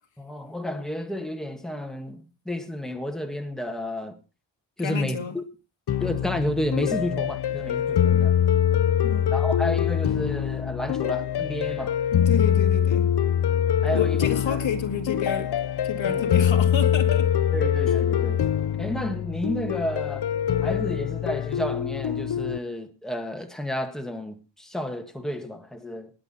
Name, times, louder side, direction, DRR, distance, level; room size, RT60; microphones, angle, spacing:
voice 1, 0.2-4.2 4.8-5.4 6.0-8.3 9.3-12.0 13.8-14.6 16.0-16.2 17.5-18.4 18.8-20.3 20.6-26.1, equal, ahead, 1.9 m, -31 dB
voice 2, 4.8-5.4 9.0-9.3 12.1-13.1 13.9-15.5 15.8-17.3, left 6 dB, 80° left, 2.3 m, -30 dB
sound 1, 5.9-22.6, left 9 dB, 60° left, 0.7 m, -24 dB
19.5 x 8.2 x 4.2 m
wide cardioid pair, 125°, 45 cm